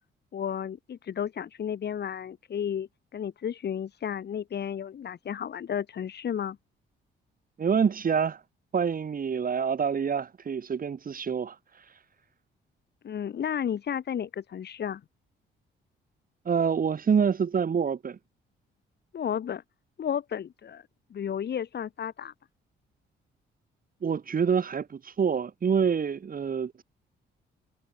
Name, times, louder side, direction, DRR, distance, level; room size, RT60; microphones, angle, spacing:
voice 1, 0.3-6.6 13.0-15.0 19.1-19.6 20.0-20.8 21.1-22.3, left 8 dB, 55° left, 4.5 m, -33 dB
voice 2, 7.6-8.4 8.7-12.0 16.5-18.2 24.0-26.8, right 6 dB, 45° right, 5.6 m, -27 dB
cardioid pair, 90°, 20 cm